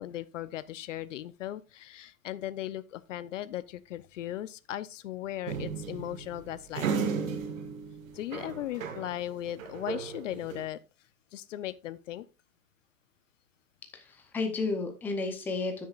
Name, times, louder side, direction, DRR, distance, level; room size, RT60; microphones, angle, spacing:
voice 1, 0.0-7.2 8.1-10.8 11.3-12.2, left 13 dB, 65° left, 0.6 m, -37 dB
sound 1, 5.5-9.2 9.5-10.6, right 6 dB, 70° right, 1.7 m, -35 dB
voice 2, 13.9-15.9, left 3 dB, 5° left, 0.6 m, -32 dB
13.0 x 6.4 x 2.4 m
hypercardioid pair, 150°, 41 cm